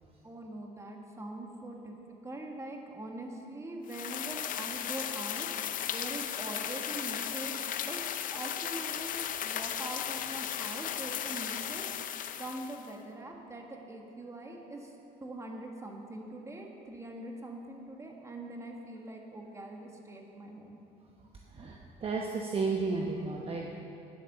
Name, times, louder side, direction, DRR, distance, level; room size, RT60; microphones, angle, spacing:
voice 1, 0.2-5.5 5.9-8.0 8.3-11.8 12.4-14.9 15.2-20.8, right 1 dB, 15° right, 1 dB, 1.6 m, -43 dB
sound 1, 3.9-12.9, left 10 dB, 55° left, 0.5 m, -36 dB
voice 2, 21.5-23.7, right 4 dB, 35° right, 0 dB, 0.9 m, -33 dB
10.0 x 8.6 x 6.7 m, 2.8 s
cardioid pair, 110°, 17 cm